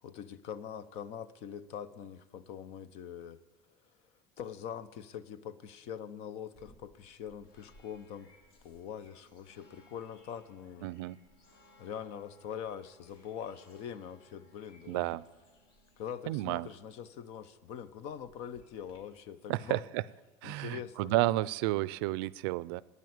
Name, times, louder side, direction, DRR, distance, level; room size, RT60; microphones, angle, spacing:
voice 1, 0.0-3.4 4.4-8.3 8.6-10.9 11.8-15.2 16.0-19.8 20.4-21.1, left 8 dB, 60° left, 0.8 m, -43 dB
sound 1, 6.5-19.0, left 1 dB, 80° left, 3.6 m, -64 dB
voice 2, 10.8-11.2 14.9-15.3 16.3-16.7 19.5-20.0 20.4-22.8, right 18 dB, 90° right, 0.5 m, -31 dB
12.5 x 9.7 x 9.5 m
cardioid pair, 150°, 12 cm